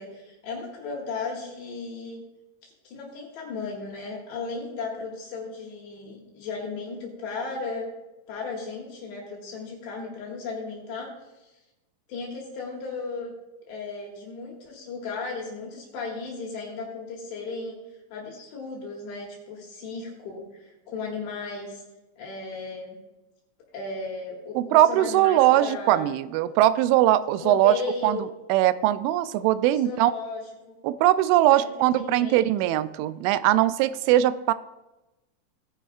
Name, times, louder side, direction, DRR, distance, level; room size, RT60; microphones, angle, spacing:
voice 1, 0.0-2.2 2.6-7.9 8.3-11.1 11.4-11.5 12.1-13.3 13.7-17.8 18.1-21.8 22.2-23.0 23.7-26.1 27.4-28.3 29.8-30.8 31.5-32.8, left 4 dB, 70° left, -2 dB, 3.9 m, -35 dB
voice 2, 24.6-27.8 28.0-28.2 28.5-30.1 30.8-34.5, right 13 dB, 90° right, 13 dB, 3.0 m, -21 dB
18.5 x 10.0 x 2.4 m, 1.0 s
omnidirectional pair, 5.4 m